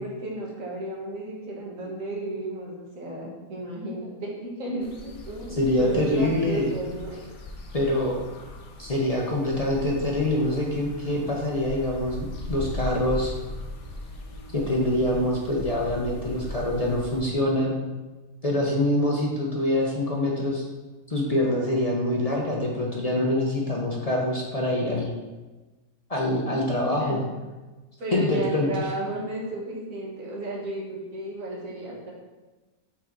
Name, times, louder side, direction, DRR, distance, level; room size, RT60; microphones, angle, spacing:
voice 1, 0.0-7.2 26.5-27.2 28.0-32.1, right 1 dB, 65° right, -3 dB, 1.8 m, -33 dB
sound 1, 4.8-17.2, left 1 dB, 60° left, 1.1 m, -39 dB
voice 2, 5.6-6.7 7.7-8.2 8.8-13.3 14.5-17.8 18.4-20.6 21.1-25.1 26.1-27.2 28.1-28.7, left 1 dB, 40° left, -2 dB, 0.6 m, -25 dB
5.8 x 4.6 x 3.8 m, 1.2 s
omnidirectional pair, 1.5 m